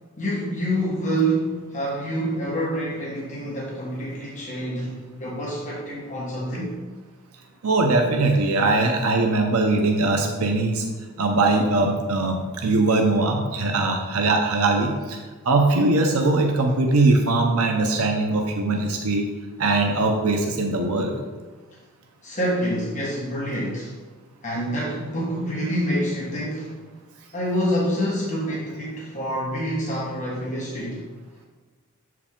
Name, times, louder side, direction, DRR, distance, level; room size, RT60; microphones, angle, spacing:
voice 1, 0.2-6.8 22.2-24.0 24.4-26.8 27.3-31.1, equal, 35° left, -5 dB, 1.2 m, -27 dB
voice 2, 7.6-10.9 11.2-15.2 15.4-19.2 19.6-21.1, right 2 dB, 70° right, 3 dB, 0.7 m, -21 dB
7.1 x 4.7 x 3.7 m, 1.4 s
head